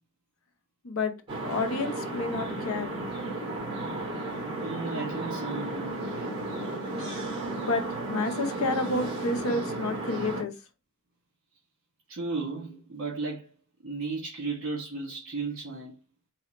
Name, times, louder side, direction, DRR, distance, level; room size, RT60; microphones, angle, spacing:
sound 1, 1.3-10.4, right 2 dB, 25° right, 1.7 m, -34 dB
voice 1, 1.4-2.9 7.6-7.8 8.1-10.5, left 3 dB, 70° left, 0.7 m, -30 dB
voice 2, 4.6-6.3 12.1-13.5 13.8-15.9, right 3 dB, 55° right, 1.5 m, -35 dB
4.1 x 2.8 x 2.9 m
head